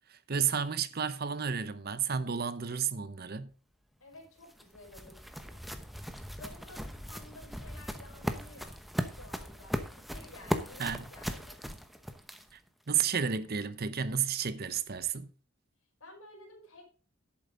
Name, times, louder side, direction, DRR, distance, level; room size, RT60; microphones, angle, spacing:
voice 1, 0.1-3.5 10.8-11.0 12.5-12.6 12.9-15.3, right 7 dB, 45° right, 0.8 m, -32 dB
voice 2, 4.0-8.8 9.1-11.6 16.0-16.8, left 2 dB, 75° left, 5.0 m, -53 dB
sound 1, 4.1-12.7, equal, ahead, 0.9 m, -38 dB
11.0 x 8.6 x 3.7 m
head